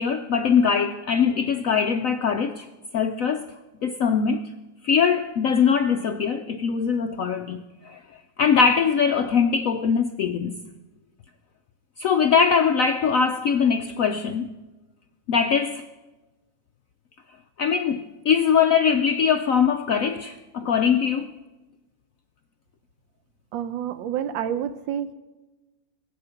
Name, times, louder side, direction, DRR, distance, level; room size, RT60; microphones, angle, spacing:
voice 1, 0.0-2.7 2.9-3.5 3.8-4.4 4.8-8.0 8.4-10.6 12.0-14.5 15.3-15.8 17.6-21.3, left 6 dB, 70° left, 0.8 m, -22 dB
voice 2, 23.5-25.1, right 9 dB, 85° right, 1.4 m, -28 dB
22.5 x 8.5 x 5.7 m
omnidirectional pair, 2.0 m